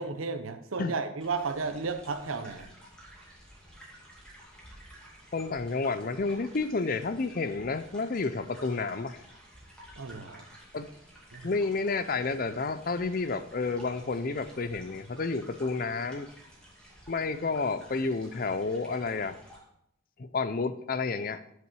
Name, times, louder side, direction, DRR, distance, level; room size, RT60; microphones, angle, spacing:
voice 1, 0.0-2.7 10.0-10.4 11.3-11.5, right 4 dB, 90° right, 9 dB, 0.9 m, -33 dB
sound 1, 1.2-19.6, right 1 dB, 5° left, 2.5 m, -52 dB
voice 2, 5.3-9.2 10.7-10.9 11.4-16.3 17.1-19.4 20.2-21.4, left 4 dB, 45° left, 12 dB, 0.5 m, -30 dB
8.2 x 7.6 x 4.7 m, 0.74 s
head